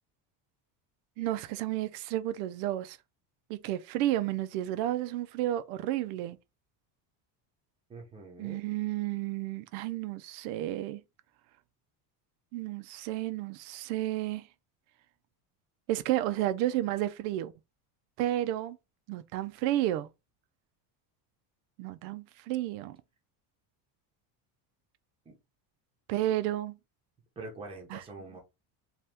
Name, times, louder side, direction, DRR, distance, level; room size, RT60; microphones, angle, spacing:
voice 1, 1.2-3.0 3.5-6.4 8.4-11.0 12.5-14.5 15.9-17.5 18.2-18.8 19.1-20.1 21.8-23.0 26.1-26.8 27.9-28.0, right 14 dB, 85° right, 0.5 m, -31 dB
voice 2, 7.9-8.6 25.3-25.4 27.4-28.4, right 3 dB, 10° right, 0.6 m, -44 dB
2.8 x 2.3 x 3.3 m
cardioid pair, 165°, 48 cm